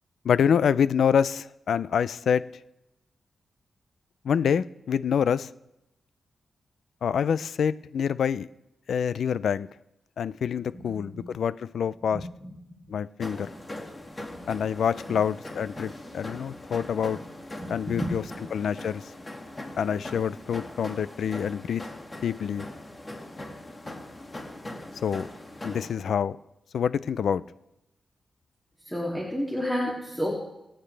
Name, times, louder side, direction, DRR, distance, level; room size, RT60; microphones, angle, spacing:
voice 1, 0.2-2.4 4.2-5.5 7.0-8.5 8.9-9.7 10.2-12.2 12.9-13.5 14.5-17.2 17.7-18.2 18.5-19.0 19.8-21.8 22.2-22.7 25.0-25.3 25.6-26.4 26.7-27.4, left 7 dB, 80° left, 0.4 m, -26 dB
voice 2, 10.7-11.2 12.1-12.7 17.1-17.2 17.6-18.1 28.8-30.3, equal, 5° left, 2.7 m, -31 dB
sound 1, 13.2-25.9, left 1 dB, 25° left, 2.2 m, -41 dB
25.5 x 8.8 x 3.4 m
cardioid pair, 90°, 0 cm